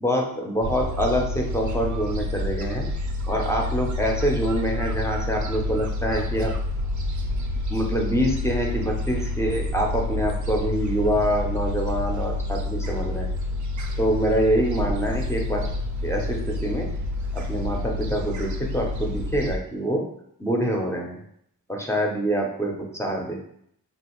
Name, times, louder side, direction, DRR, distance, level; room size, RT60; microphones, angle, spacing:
voice 1, 0.0-2.9 3.3-6.5 7.7-13.3 14.0-15.7 16.0-16.9 17.3-20.0 20.4-21.2 21.7-23.4, equal, 10° left, 0 dB, 0.5 m, -25 dB
Gull seagull, 0.6-19.6, left 1 dB, 55° right, 0.5 m, -28 dB
3.1 x 2.4 x 2.9 m, 0.70 s
wide cardioid pair, 105°, 36 cm